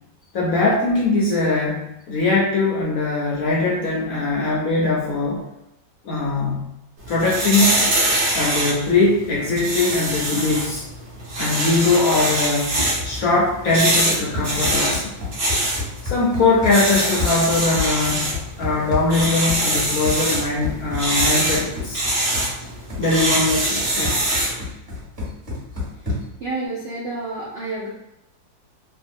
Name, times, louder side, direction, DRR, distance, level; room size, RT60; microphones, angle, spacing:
voice 1, 0.3-5.4 6.0-6.7 7.1-7.8 8.3-10.8 11.4-12.8 13.0-15.1 16.0-18.3 18.6-22.0 23.0-24.2, left 3 dB, 65° left, -4 dB, 0.9 m, -21 dB
sound 1, 7.0-24.6, right 1 dB, 55° right, 1.4 m, -24 dB
Run, 14.3-26.4, left 3 dB, 30° right, 1.7 m, -31 dB
voice 2, 26.4-27.9, right 2 dB, 75° right, -6 dB, 0.5 m, -29 dB
3.5 x 2.4 x 2.5 m, 0.86 s
omnidirectional pair, 2.0 m